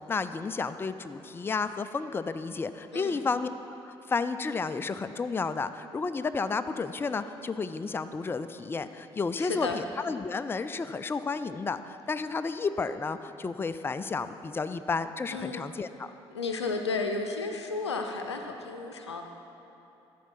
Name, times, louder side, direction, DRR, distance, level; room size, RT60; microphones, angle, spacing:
voice 1, 0.0-3.5 3.8-16.1, left 4 dB, 15° left, 12 dB, 0.4 m, -32 dB
voice 2, 2.9-3.2 9.4-9.8 15.3-15.7 16.3-19.2, left 3 dB, 85° left, 5 dB, 0.5 m, -33 dB
13.5 x 4.6 x 5.9 m, 2.9 s
figure-of-eight pair, 50°, 14 cm